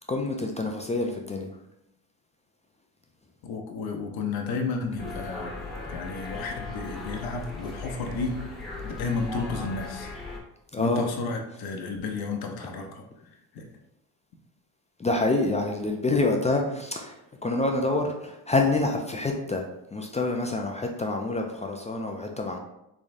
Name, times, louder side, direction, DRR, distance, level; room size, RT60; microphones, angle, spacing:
voice 1, 0.1-1.5 5.6-5.7 10.7-11.1 15.0-19.7 19.9-22.6, left 2 dB, 15° left, 2 dB, 0.3 m, -27 dB
voice 2, 3.4-5.5 5.9-8.4 8.8-10.1 10.8-13.0 13.5-13.7, left 4 dB, 50° left, 3 dB, 0.8 m, -32 dB
sound 1, 5.0-10.4, left 3 dB, ahead, 1.2 m, -38 dB
3.6 x 3.2 x 2.6 m, 0.85 s
supercardioid pair, 70°, 46 cm